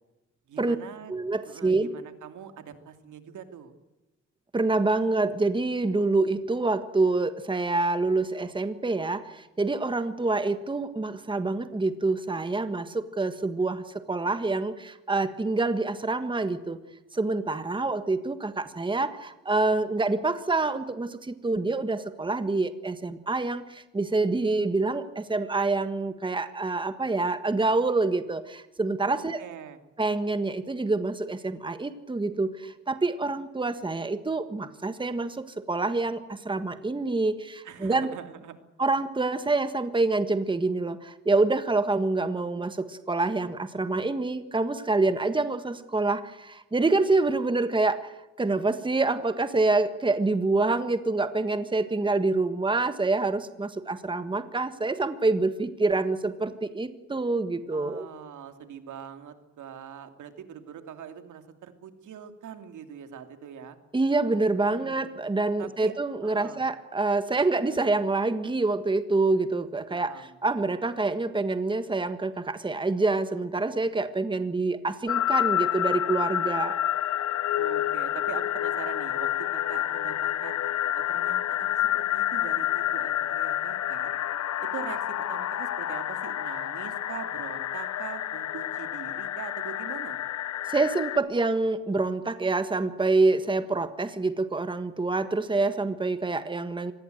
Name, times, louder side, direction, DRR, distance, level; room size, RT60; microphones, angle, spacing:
voice 1, 0.5-1.1 1.4-3.7 29.1-29.8 37.6-38.6 57.7-63.8 64.7-65.1 65.6-65.9 66.2-66.6 69.9-70.9 77.6-80.6 81.0-84.1 84.6-90.2, right 8 dB, 90° right, 7 dB, 2.7 m, -42 dB
voice 2, 1.1-1.9 4.5-16.8 17.1-29.4 30.0-38.1 38.8-58.1 63.9-76.8 90.7-96.9, right 3 dB, 15° right, 10 dB, 1.5 m, -26 dB
sound 1, 75.1-91.2, left 12 dB, 65° left, 0.8 m, -29 dB
25.5 x 20.0 x 7.9 m, 1.0 s
cardioid pair, 125°, 29 cm